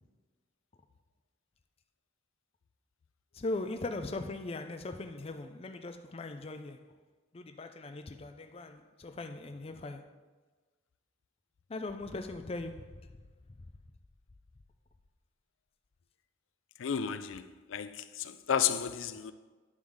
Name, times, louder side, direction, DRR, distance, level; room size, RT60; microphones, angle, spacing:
voice 1, 3.3-6.9 7.3-10.1 11.7-13.1, left 2 dB, 30° left, 0.4 m, -39 dB
voice 2, 16.8-19.3, left 8 dB, 85° left, 0.5 m, -32 dB
10.5 x 4.0 x 6.4 m
head